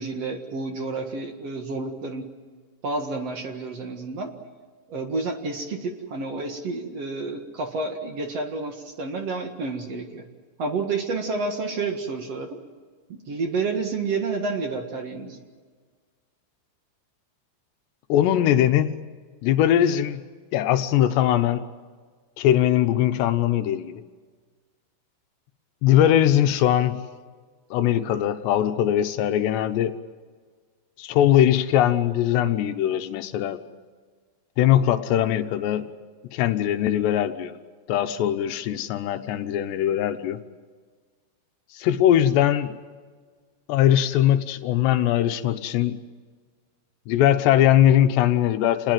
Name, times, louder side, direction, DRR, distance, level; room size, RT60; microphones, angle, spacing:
voice 1, 0.0-2.3 2.8-4.3 4.9-10.3 10.6-12.6 13.1-15.4, right 3 dB, 50° right, 4 dB, 2.2 m, -30 dB
voice 2, 18.1-18.9 19.4-20.2 20.5-21.6 22.4-23.9 25.8-27.0 27.7-29.9 31.0-33.6 34.6-35.8 36.3-37.5 37.9-40.4 41.7-42.7 43.7-46.0 47.1-48.9, left 11 dB, 85° left, 8 dB, 3.2 m, -21 dB
28.5 x 20.0 x 7.7 m, 1.5 s
omnidirectional pair, 4.8 m